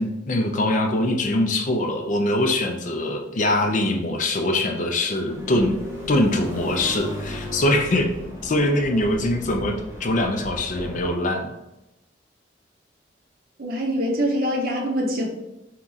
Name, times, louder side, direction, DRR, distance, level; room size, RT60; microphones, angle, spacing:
voice 1, 0.0-5.8 6.1-8.1 8.4-11.5, left 1 dB, 40° left, 3 dB, 0.5 m, -23 dB
sound 1, 5.3-11.1, equal, 15° right, 1.2 m, -35 dB
voice 2, 13.6-15.3, equal, 50° right, 0 dB, 0.8 m, -24 dB
3.5 x 2.9 x 3.9 m, 0.94 s
head